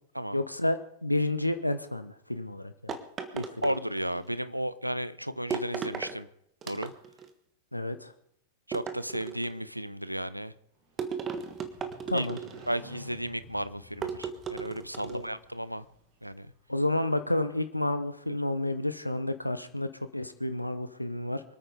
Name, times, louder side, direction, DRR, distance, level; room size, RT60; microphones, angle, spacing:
voice 1, 0.3-2.9 3.3-3.4 7.7-8.1 12.1-12.4 15.1-15.3 16.7-21.4, left 1 dB, 85° left, 11 dB, 0.9 m, -30 dB
sound 1, 2.9-4.3 5.5-6.2 6.6-7.3 8.7-9.6 11.0-12.8 14.0-15.3, right 6 dB, 25° right, 1.6 m, -36 dB
voice 2, 3.6-6.3 6.6-6.9 8.7-10.5 12.1-12.3 12.7-15.8 16.2-16.5, equal, 90° right, 16 dB, 0.6 m, -34 dB
Motorcycle, 10.8-16.7, equal, 45° right, 7.9 m, -52 dB
25.5 x 9.1 x 5.0 m, 0.70 s
figure-of-eight pair, 90°, 0 cm